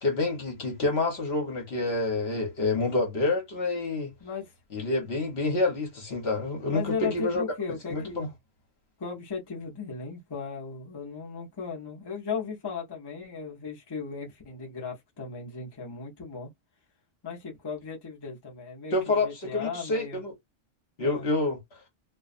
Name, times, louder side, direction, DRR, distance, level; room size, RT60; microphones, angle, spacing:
voice 1, 0.0-4.1 4.7-7.4 7.9-8.3 18.9-20.3 21.0-21.6, left 2 dB, 55° left, 1.2 m, -28 dB
voice 2, 4.2-4.8 6.7-8.3 9.0-16.5 17.2-20.2 21.0-21.3, left 5 dB, 25° left, 0.7 m, -36 dB
2.5 x 2.3 x 2.4 m
omnidirectional pair, 1.3 m